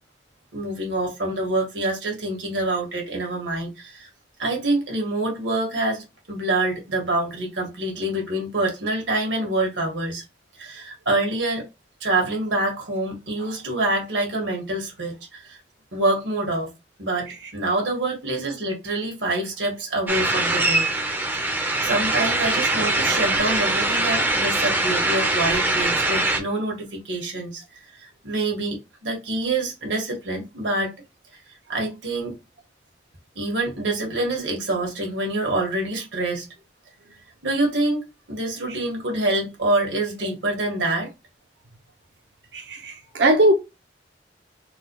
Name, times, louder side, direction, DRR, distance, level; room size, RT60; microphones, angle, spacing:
voice 1, 0.5-4.1 4.4-10.2 10.6-11.7 12.0-15.6 15.9-16.7 17.0-20.9 21.4-27.6 28.0-30.9 31.7-32.3 33.3-36.5 37.4-38.0 38.3-41.1, right 2 dB, 85° right, 1.6 m, -26 dB
sound 1, 20.1-26.4, right 2 dB, 10° right, 0.5 m, -22 dB
voice 2, 42.5-43.5, right 1 dB, 65° right, 0.7 m, -19 dB
4.0 x 2.3 x 3.0 m
head